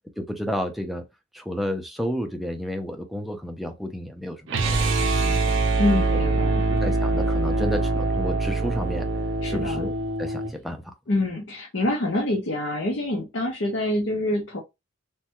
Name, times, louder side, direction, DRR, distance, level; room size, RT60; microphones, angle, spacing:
voice 1, 0.2-1.0 1.3-5.5 6.7-9.1 9.4-9.9 10.2-10.9, equal, ahead, 0.5 m, -31 dB
sound 1, 4.5-10.5, right 2 dB, 75° right, 0.6 m, -24 dB
voice 2, 5.8-6.6 9.4-9.9 11.1-14.6, left 1 dB, 75° left, 0.7 m, -26 dB
3.2 x 2.2 x 2.9 m
head